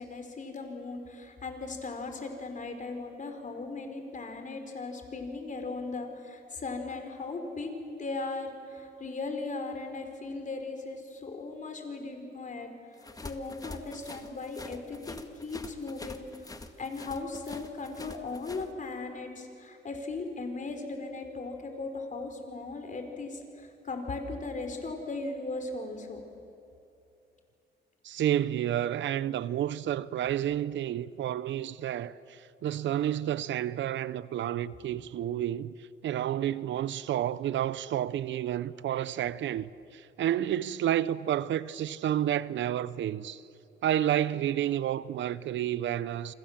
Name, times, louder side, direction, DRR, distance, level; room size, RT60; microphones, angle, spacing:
voice 1, 0.0-7.7 8.0-12.7 13.2-16.3 16.8-23.4 23.8-26.2, left 3 dB, 40° left, 4.8 m, -37 dB
sound 1, 13.0-18.7, left 2 dB, 20° left, 1.9 m, -45 dB
voice 2, 28.0-35.7 36.0-43.4 43.8-46.3, right 11 dB, 70° right, 0.8 m, -30 dB
27.5 x 26.5 x 7.5 m
cardioid pair, 90°, 20 cm